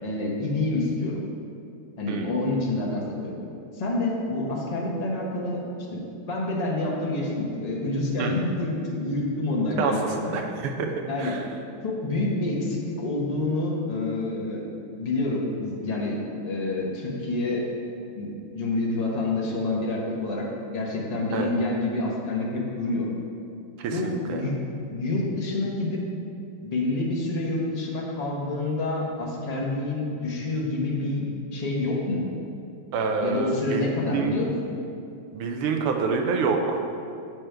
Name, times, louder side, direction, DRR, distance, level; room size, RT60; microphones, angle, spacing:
voice 1, 0.0-1.2 2.0-3.4 3.7-5.6 5.9-10.0 10.2-10.4 11.1-11.4 11.8-14.6 15.0-17.7 18.2-20.5 20.7-23.1 23.9-24.6 24.9-26.0 26.6-31.2 31.5-32.3 33.2-34.5, left 2 dB, 40° left, -3 dB, 0.5 m, -28 dB
voice 2, 9.8-10.9 11.2-11.4 21.3-21.5 23.8-24.4 32.9-34.3 35.3-36.8, right 4 dB, 85° right, 4 dB, 1.6 m, -27 dB
7.7 x 5.1 x 4.5 m, 2.5 s
omnidirectional pair, 2.4 m